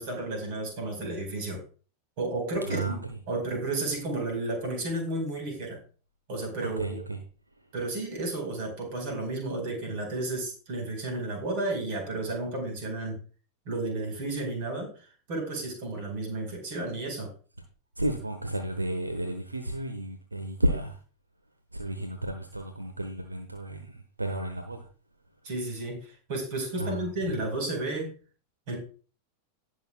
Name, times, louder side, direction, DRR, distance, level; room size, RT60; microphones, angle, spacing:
voice 1, 0.0-1.6 2.2-3.0 3.3-5.8 6.3-7.0 7.7-13.2 13.6-14.9 15.3-17.3 25.4-28.1 28.7-28.8, right 2 dB, 50° right, 2 dB, 4.9 m, -32 dB
voice 2, 2.6-3.2 6.6-7.2 18.0-21.0 21.7-24.9 26.8-27.4, right 1 dB, 80° right, 6 dB, 1.1 m, -32 dB
18.5 x 6.4 x 2.4 m, 0.38 s
figure-of-eight pair, 90°, 0 cm